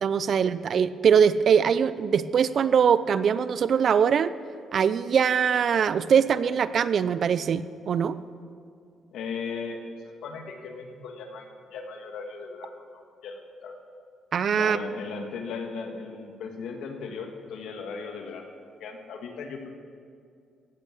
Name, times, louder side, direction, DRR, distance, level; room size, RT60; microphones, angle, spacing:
voice 1, 0.0-4.3 4.7-8.2 14.3-14.8, right 7 dB, 55° right, 15 dB, 0.5 m, -22 dB
voice 2, 9.1-11.5 11.7-13.8 14.5-18.5 18.8-19.7, left 5 dB, 80° left, 4 dB, 1.7 m, -37 dB
16.5 x 8.3 x 6.4 m, 2.3 s
cardioid pair, 90°, 0 cm